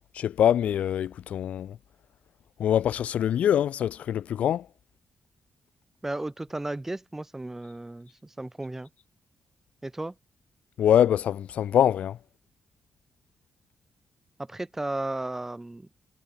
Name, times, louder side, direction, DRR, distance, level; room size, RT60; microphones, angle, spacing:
voice 1, 0.1-1.8 2.6-4.6 10.8-12.2, left 10 dB, 75° left, 1.5 m, -24 dB
voice 2, 6.0-8.9 9.8-10.1 14.4-15.9, right 2 dB, 15° right, 2.6 m, -34 dB
cardioid pair, 70°, 2 cm